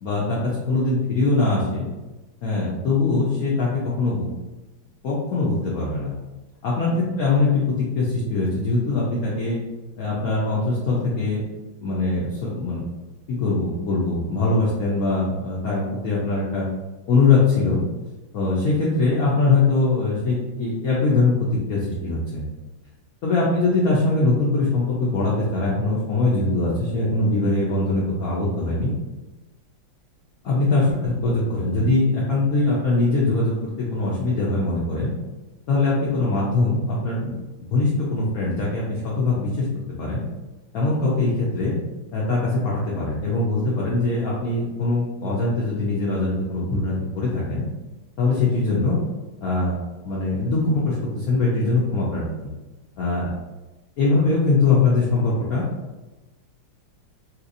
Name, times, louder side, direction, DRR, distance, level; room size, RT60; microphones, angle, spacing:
voice 1, 0.0-1.9 2.4-4.3 5.0-6.1 6.6-9.6 10.0-11.4 11.8-12.8 13.3-16.7 17.1-17.8 18.3-22.4 23.2-28.9 30.4-35.1 35.7-37.3 37.7-39.7 40.0-40.2 40.7-41.8 42.1-47.6 48.2-49.0 49.4-49.8 50.0-52.5 53.0-53.3 54.0-55.6, left 3 dB, 80° left, -6 dB, 0.8 m, -22 dB
3.2 x 2.9 x 2.5 m, 1.1 s
omnidirectional pair, 2.4 m